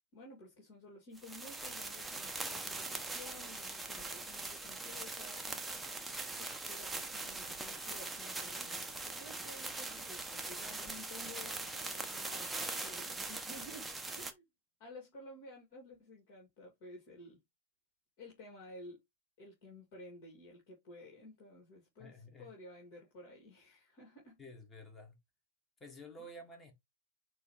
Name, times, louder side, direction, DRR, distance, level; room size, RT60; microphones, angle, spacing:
voice 1, 0.1-5.8 6.4-14.4 14.8-17.4 18.2-19.0 19.4-24.4 26.2-26.3, left 1 dB, 45° left, 3.0 m, -53 dB
sound 1, 1.2-14.3, right 2 dB, 5° right, 0.9 m, -42 dB
voice 2, 22.0-22.5 24.4-25.2 25.8-26.7, left 1 dB, 15° left, 2.1 m, -51 dB
9.1 x 3.1 x 3.3 m
figure-of-eight pair, 110°, 0 cm